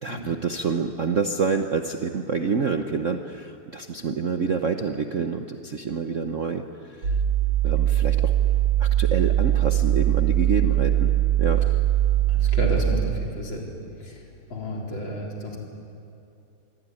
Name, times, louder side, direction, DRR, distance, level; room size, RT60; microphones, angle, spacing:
voice 1, 0.0-6.6 7.0-7.1 7.6-8.3 8.8-11.1 11.4-11.6, right 5 dB, 50° right, 6 dB, 1.0 m, -27 dB
sound 1, 7.0-12.8, right 12 dB, 75° right, 6.2 m, -21 dB
voice 2, 12.3-13.7 14.5-15.6, equal, 55° left, -1 dB, 4.9 m, -31 dB
26.0 x 22.0 x 9.8 m, 2.7 s
omnidirectional pair, 2.4 m